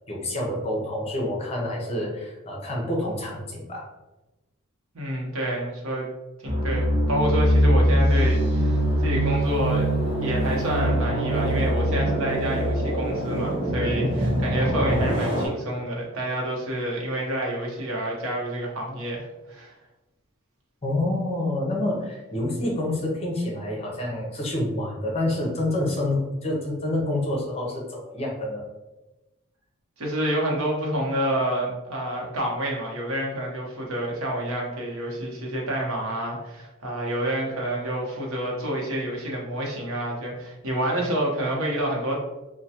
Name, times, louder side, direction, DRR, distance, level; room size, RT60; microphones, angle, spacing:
voice 1, 0.1-3.9 20.8-28.6, left 1 dB, 30° left, -2 dB, 0.6 m, -28 dB
voice 2, 4.9-6.1 6.4-9.9 10.2-19.8 30.0-42.2, right 1 dB, 85° right, -2 dB, 0.8 m, -28 dB
sound 1, 6.4-15.5, equal, 30° right, 0.8 m, -23 dB
3.1 x 2.2 x 2.8 m, 1.1 s
head